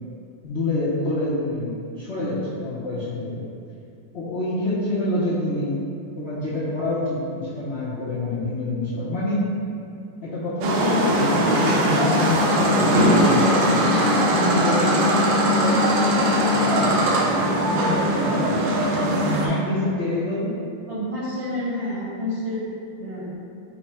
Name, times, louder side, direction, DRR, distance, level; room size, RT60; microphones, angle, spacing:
voice 1, 0.4-3.4 4.1-5.8 6.2-9.5 10.2-12.9 13.9-15.2 16.5-20.5, left 2 dB, 70° left, -10 dB, 0.6 m, -27 dB
sound 1, 10.6-19.5, equal, 80° right, 1.4 m, -20 dB
voice 2, 20.9-22.7 23.0-23.3, left 1 dB, 45° right, -7 dB, 0.9 m, -29 dB
5.8 x 2.1 x 4.1 m, 2.5 s
omnidirectional pair, 2.2 m